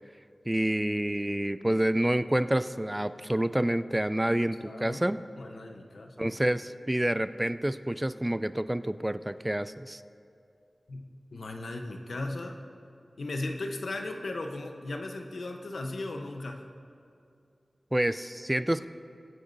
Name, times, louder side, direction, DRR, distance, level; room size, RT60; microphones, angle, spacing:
voice 1, 0.5-5.2 6.2-10.0 17.9-18.9, right 1 dB, 15° right, 13 dB, 0.4 m, -28 dB
voice 2, 4.6-5.0 5.4-6.5 10.9-12.6 13.2-16.7, left 2 dB, 85° left, 4 dB, 0.9 m, -37 dB
22.5 x 9.5 x 2.7 m, 2.5 s
cardioid pair, 50°, 0 cm